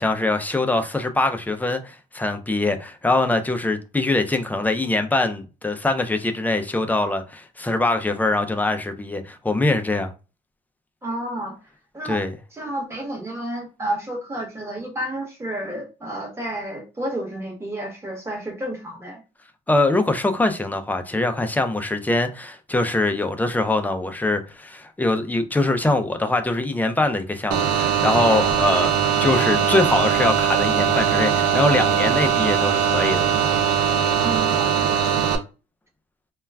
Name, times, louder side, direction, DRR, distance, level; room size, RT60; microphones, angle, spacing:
voice 1, 0.0-10.1 12.0-12.3 19.7-33.3, left 2 dB, 10° left, 0.4 m, -23 dB
voice 2, 11.0-11.6 11.9-12.2 12.5-19.2 34.2-34.9, right 1 dB, 15° right, 1.0 m, -31 dB
sound 1, 27.5-35.4, right 8 dB, 90° right, 0.5 m, -20 dB
2.2 x 2.1 x 3.3 m
cardioid pair, 110°, 17 cm